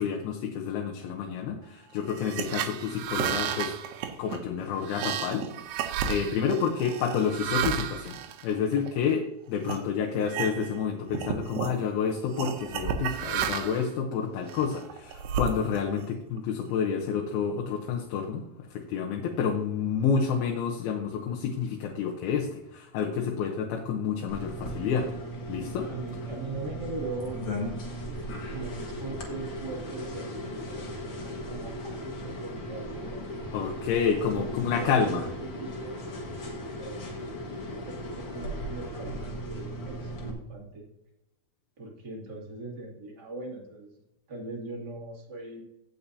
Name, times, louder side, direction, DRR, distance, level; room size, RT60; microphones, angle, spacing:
voice 1, 0.0-3.7 4.2-5.5 5.8-8.2 8.4-25.1 25.5-25.9 33.5-35.3, left 6 dB, 85° left, 1 dB, 2.8 m, -29 dB
sound 1, 2.1-9.1 9.6-9.8 10.2-10.8 11.1-11.8 12.4-13.9 14.5-16.0, right 8 dB, 85° right, 1.7 m, -32 dB
sound 2, 24.3-40.3, equal, 45° left, 1.6 m, -37 dB
voice 2, 25.9-27.7 28.0-28.2 28.5-33.4 34.2-36.0 36.4-40.8 41.8-43.9 44.3-45.6, right 3 dB, 30° right, -1 dB, 2.3 m, -40 dB
16.5 x 5.9 x 2.7 m, 0.90 s
omnidirectional pair, 4.3 m